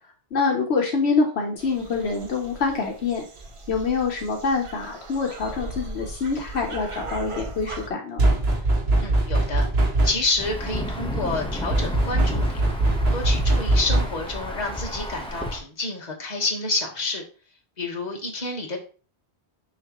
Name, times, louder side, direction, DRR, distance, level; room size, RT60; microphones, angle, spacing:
voice 1, 0.3-3.3 3.7-8.2, left 4 dB, 70° left, 1 dB, 1.2 m, -25 dB
sound 1, 1.6-7.9, right 2 dB, 35° right, 0.6 m, -38 dB
sound 2, 8.2-10.4 11.7-14.4, right 2 dB, 70° right, 1.4 m, -21 dB
voice 2, 9.0-9.6 10.0-12.6 13.1-17.2 17.8-18.8, left 3 dB, 40° left, 0 dB, 1.5 m, -29 dB
Insect / Thunder / Rain, 10.4-15.6, equal, 5° left, 0.9 m, -31 dB
6.4 x 5.1 x 3.0 m, 0.38 s
omnidirectional pair, 1.1 m